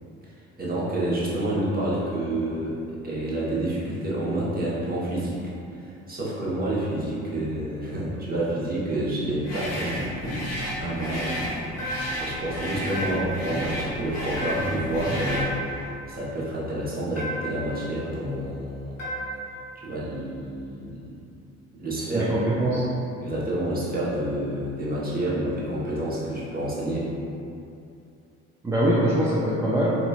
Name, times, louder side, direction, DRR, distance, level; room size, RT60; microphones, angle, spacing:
voice 1, 0.6-2.8 3.0-5.4 5.7-10.4 10.8-11.3 11.6-11.7 12.2-19.0 19.8-21.2 21.8-22.3 23.2-27.1, right 1 dB, 25° right, -7 dB, 1.0 m, -29 dB
sound 1, 9.4-15.6, equal, 45° left, 0.9 m, -32 dB
sound 2, 11.8-12.3 12.9-13.4 14.4-14.9 15.3-15.8 17.2-17.7 19.0-19.5, right 1 dB, 85° left, 0.8 m, -33 dB
voice 2, 22.1-22.8 28.6-30.0, right 1 dB, 10° right, -8 dB, 0.4 m, -23 dB
4.2 x 2.7 x 2.3 m, 2.6 s
figure-of-eight pair, 50°, 37 cm